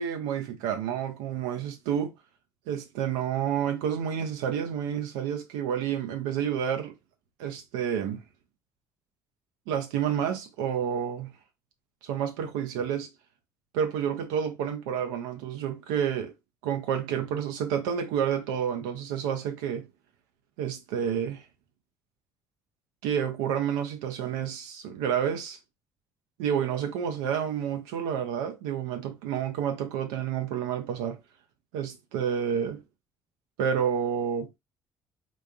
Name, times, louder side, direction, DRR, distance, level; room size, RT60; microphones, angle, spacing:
voice 1, 0.0-2.1 2.7-6.9 7.4-8.2 9.7-11.3 12.0-13.1 13.7-16.3 16.6-19.9 20.6-21.4 23.0-25.6 26.4-31.2 31.7-32.8 33.6-34.5, right 8 dB, 80° right, 0.4 m, -29 dB
3.8 x 2.3 x 2.3 m
hypercardioid pair, 50°, 11 cm